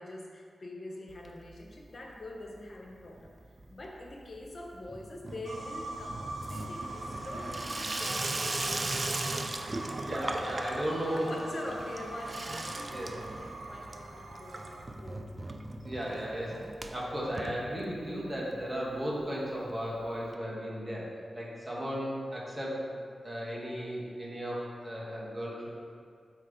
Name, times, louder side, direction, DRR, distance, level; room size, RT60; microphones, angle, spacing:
voice 1, 0.0-3.3 3.7-8.5 11.1-15.3, left 1 dB, 45° left, 0 dB, 0.9 m, -44 dB
Water tap faucet / Sink (filling or washing), 1.1-2.7 3.0-18.3 18.6-18.7 18.9-19.0 19.2-19.3 20.3-20.4, right 2 dB, 30° right, 0.4 m, -39 dB
sound 1, 5.4-14.8, right 2 dB, 75° right, 0.8 m, -42 dB
voice 2, 10.0-11.3 12.9-13.2 15.8-25.7, equal, 10° right, -5 dB, 1.4 m, -35 dB
7.9 x 3.2 x 5.1 m, 2.3 s
wide cardioid pair, 140°, 0 cm